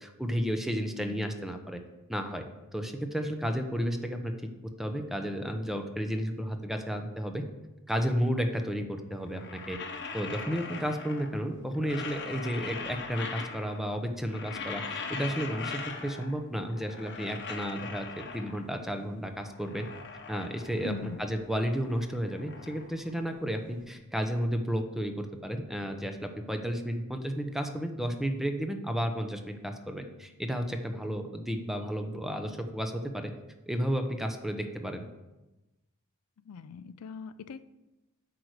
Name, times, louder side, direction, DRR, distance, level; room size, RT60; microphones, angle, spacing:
voice 1, 0.0-1.8 2.1-2.4 2.7-4.3 4.8-7.4 7.9-9.8 10.1-19.9 20.3-20.9 21.2-33.3 33.7-35.0, equal, ahead, 5 dB, 0.7 m, -32 dB
sound 1, 9.2-11.4 11.7-13.9 14.2-16.4 16.7-18.8 19.2-21.2 21.5-23.7, left 4 dB, 55° left, 1.0 m, -40 dB
voice 2, 20.8-21.2 36.5-37.7, left 6 dB, 85° left, 14 dB, 0.4 m, -41 dB
8.5 x 4.8 x 6.4 m, 1.0 s
head